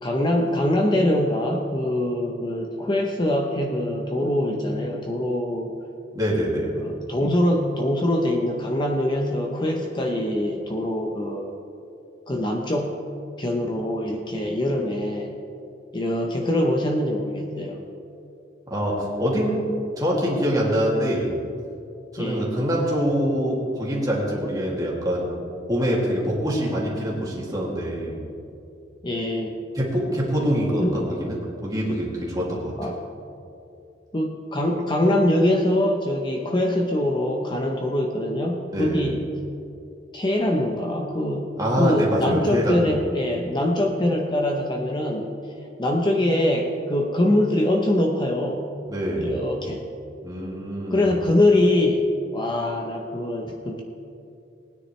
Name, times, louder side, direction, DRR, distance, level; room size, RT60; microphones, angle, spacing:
voice 1, 0.0-5.7 6.8-11.6 12.3-13.0 13.4-15.3 15.9-17.8 22.2-22.5 29.0-29.5 30.8-31.0 32.8-33.0 34.1-39.3 40.1-45.3 45.8-48.6 49.2-49.9 50.9-53.8, left 1 dB, 25° left, 1 dB, 0.8 m, -23 dB
voice 2, 6.1-6.8 18.7-19.6 20.0-21.3 22.1-25.3 25.7-28.2 29.7-32.7 38.7-39.1 41.6-42.9 48.9-49.3 50.2-51.0, equal, 20° right, -4 dB, 2.5 m, -24 dB
19.5 x 9.8 x 3.3 m, 2.7 s
head